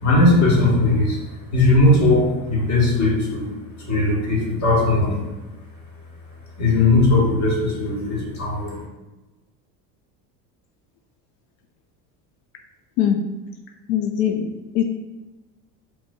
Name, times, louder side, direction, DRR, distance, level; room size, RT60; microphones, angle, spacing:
voice 1, 0.0-5.3 6.6-8.8, left 2 dB, 35° left, -3 dB, 1.3 m, -18 dB
voice 2, 13.9-14.8, left 9 dB, 80° left, 4 dB, 0.5 m, -21 dB
4.1 x 2.9 x 2.2 m, 1.1 s
hypercardioid pair, 90°, 49 cm